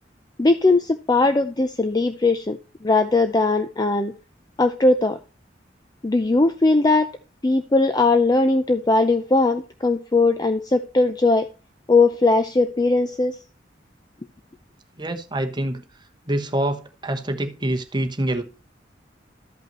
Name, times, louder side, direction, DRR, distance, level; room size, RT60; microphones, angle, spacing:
voice 1, 0.4-4.1 4.6-5.2 6.0-7.1 7.4-11.5 11.9-13.4, left 3 dB, 20° left, 0.5 m, -19 dB
voice 2, 15.0-15.8 16.3-18.4, right 1 dB, 25° right, 1.0 m, -25 dB
13.5 x 5.5 x 3.0 m
head